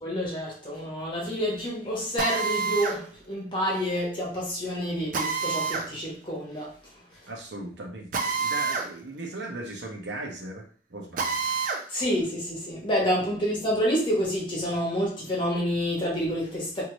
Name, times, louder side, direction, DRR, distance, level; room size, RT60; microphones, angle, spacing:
voice 1, 0.0-6.7 11.9-16.8, equal, 30° left, 1.1 m, -28 dB
Drill, 2.2-3.0 5.1-5.9 8.1-8.9 9.3-9.4 11.2-11.8, right 5 dB, 50° right, 0.4 m, -28 dB
voice 2, 7.3-11.3, right 1 dB, 80° right, 0.8 m, -38 dB
2.7 x 2.6 x 3.0 m
head